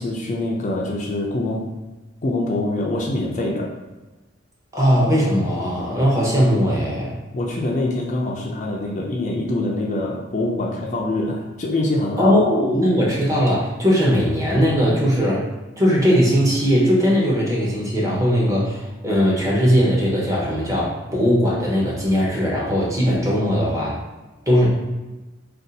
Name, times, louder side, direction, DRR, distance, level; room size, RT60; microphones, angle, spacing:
voice 1, 0.0-1.6 2.2-3.7 7.3-12.3, left 2 dB, 40° left, -2 dB, 0.4 m, -24 dB
voice 2, 4.7-7.2 12.2-15.5 15.8-24.0 24.5-24.7, equal, 15° right, -5 dB, 0.7 m, -19 dB
2.6 x 2.3 x 3.9 m, 1.1 s
head